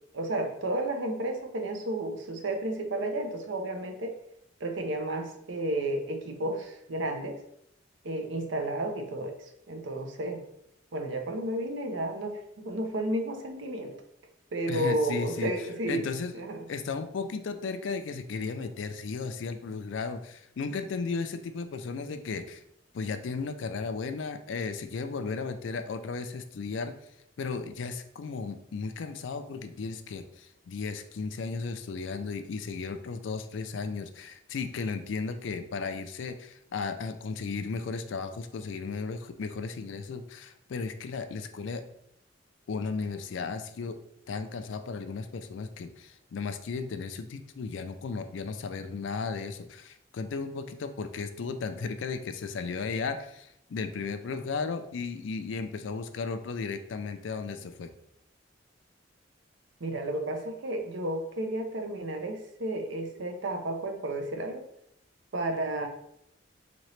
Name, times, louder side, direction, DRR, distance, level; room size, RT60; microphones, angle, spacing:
voice 1, 0.1-4.2 4.6-7.4 8.0-9.3 9.7-10.4 10.9-13.9 14.5-16.6 59.8-64.7 65.3-65.9, right 1 dB, 70° right, 4 dB, 0.6 m, -32 dB
voice 2, 14.7-15.5 15.9-16.4 16.7-22.6 22.9-27.0 27.4-41.8 42.7-44.0 44.3-57.9, left 4 dB, 70° left, 9 dB, 0.4 m, -35 dB
4.2 x 2.8 x 3.1 m, 0.75 s
head